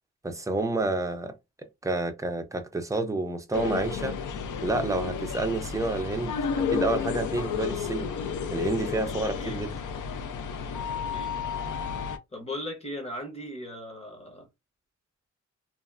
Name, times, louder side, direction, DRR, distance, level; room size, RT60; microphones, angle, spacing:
voice 1, 0.2-1.4 1.8-4.2 4.6-8.1 8.5-9.7, right 2 dB, 10° right, 0.3 m, -29 dB
sound 1, 3.5-12.2, left 6 dB, 85° left, 0.5 m, -32 dB
voice 2, 9.2-9.6 10.9-11.4 12.3-14.5, left 1 dB, 20° left, 0.8 m, -38 dB
2.8 x 2.3 x 2.4 m
wide cardioid pair, 150°, 30 cm